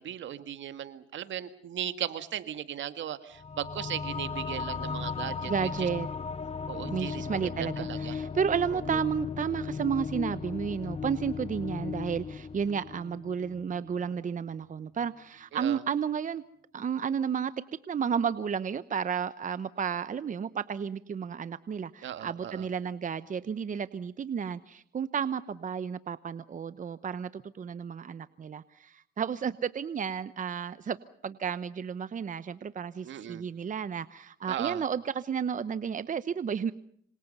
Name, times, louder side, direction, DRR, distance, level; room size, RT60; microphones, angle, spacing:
voice 1, 0.0-5.9 6.7-8.2 8.7-9.0 15.5-15.8 22.0-22.7 33.0-33.4 34.5-34.8, right 10 dB, 70° right, 11 dB, 1.9 m, -37 dB
sound 1, 3.4-14.3, left 5 dB, 30° left, 1.0 m, -36 dB
voice 2, 5.5-6.1 6.9-16.4 16.7-17.5 17.9-31.0 31.2-36.7, right 7 dB, 40° right, 14 dB, 0.9 m, -32 dB
26.5 x 26.5 x 5.5 m, 0.64 s
cardioid pair, 90°, 20 cm